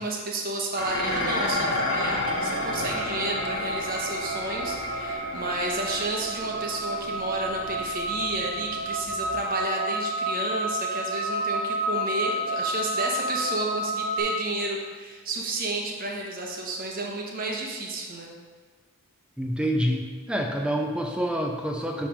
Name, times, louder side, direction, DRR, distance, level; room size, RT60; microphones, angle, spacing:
voice 1, 0.0-18.3, right 2 dB, 40° right, -1 dB, 1.0 m, -31 dB
Dishes pots and pans, 0.7-9.6, left 2 dB, 55° left, 1.2 m, -32 dB
sound 1, 1.8-14.2, right 1 dB, 10° left, 1.9 m, -31 dB
voice 2, 19.4-22.1, equal, 5° right, 2 dB, 0.5 m, -27 dB
8.6 x 3.3 x 5.1 m, 1.5 s
head